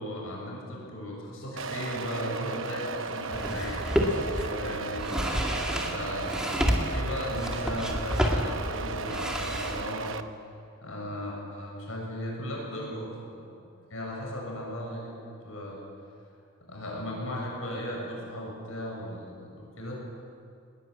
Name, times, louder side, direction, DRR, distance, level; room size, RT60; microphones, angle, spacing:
voice 1, 0.0-5.1 5.8-10.1 10.8-13.3 13.9-15.8 16.7-20.0, left 1 dB, 70° left, -2 dB, 7.0 m, -36 dB
sound 1, 1.6-10.2, right 4 dB, 65° right, 0.9 m, -35 dB
sound 2, 3.3-4.5 4.9-9.8, equal, 5° right, 2.2 m, -29 dB
21.0 x 20.5 x 8.8 m, 2.4 s
head